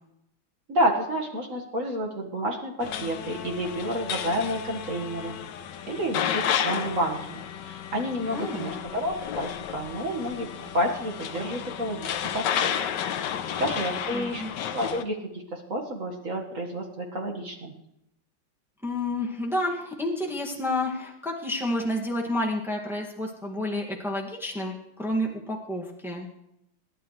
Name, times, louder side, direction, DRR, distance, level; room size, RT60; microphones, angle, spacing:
voice 1, 0.7-5.3 5.9-12.1 12.3-12.7 13.6-14.4 14.7-15.2 15.5-17.7, equal, 40° right, 1 dB, 1.9 m, -30 dB
sound 1, 2.8-15.0, left 9 dB, 65° left, 1.3 m, -32 dB
voice 2, 8.3-8.8 14.1-14.5 18.8-26.3, left 1 dB, ahead, -2 dB, 1.7 m, -30 dB
28.0 x 11.5 x 3.2 m, 0.84 s
omnidirectional pair, 2.3 m